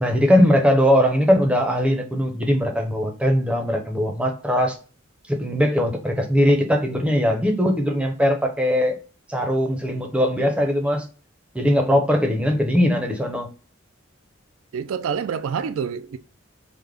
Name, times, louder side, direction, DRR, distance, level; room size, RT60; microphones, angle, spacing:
voice 1, 0.0-4.8 5.3-9.0 9.3-11.0 11.5-13.5, equal, 5° right, 0.5 m, -20 dB
voice 2, 14.7-16.2, right 7 dB, 80° right, 0.3 m, -27 dB
3.6 x 2.1 x 3.2 m
head